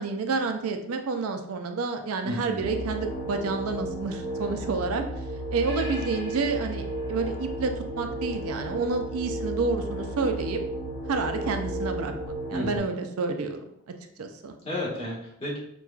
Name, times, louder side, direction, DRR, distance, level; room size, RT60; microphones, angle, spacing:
voice 1, 0.0-5.1 5.5-10.6 11.1-13.7 14.2-14.5, right 4 dB, 75° right, 6 dB, 0.4 m, -29 dB
voice 2, 2.2-2.7 5.9-6.0 12.5-12.8 14.6-15.6, left 1 dB, 25° left, -6 dB, 1.2 m, -32 dB
sound 1, 2.6-12.8, right 1 dB, 20° right, 0.8 m, -33 dB
5.9 x 2.3 x 2.3 m, 0.77 s
head